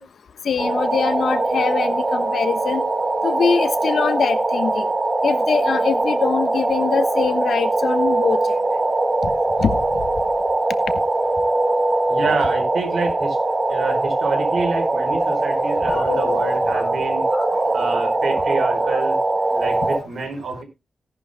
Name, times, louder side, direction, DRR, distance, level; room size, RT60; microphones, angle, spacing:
voice 1, 0.4-2.8 3.2-4.9 5.2-8.6 9.6-9.7 15.9-16.9 17.3-17.9, left 6 dB, 75° left, 1.1 m, -23 dB
sound 1, 0.6-20.0, right 2 dB, 25° right, 1.8 m, -21 dB
voice 2, 12.1-13.4 13.7-17.3 17.7-19.2 19.5-20.6, right 4 dB, 75° right, 4.7 m, -27 dB
17.0 x 11.0 x 2.2 m
wide cardioid pair, 145°, 0 cm